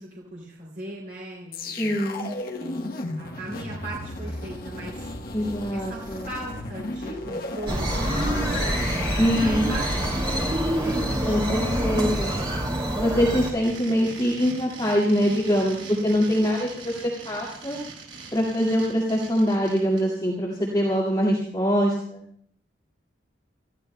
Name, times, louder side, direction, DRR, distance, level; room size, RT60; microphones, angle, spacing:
voice 1, 0.0-2.2 2.6-5.4 5.7-8.9 9.2-12.9, right 1 dB, 50° right, -4 dB, 3.1 m, -38 dB
sound 1, 1.5-12.6 13.0-13.2, left 2 dB, 50° left, 1.1 m, -35 dB
voice 2, 1.8-2.3 5.3-6.3 9.2-9.7 11.3-12.3 13.0-16.9 17.3-17.8 18.3-22.3, equal, 20° left, -5 dB, 2.1 m, -23 dB
sound 2, 7.7-13.5, right 1 dB, 25° right, 2.5 m, -26 dB
sound 3, 13.4-20.0, right 4 dB, 70° right, 6.8 m, -41 dB
29.5 x 14.5 x 2.3 m, 0.63 s
head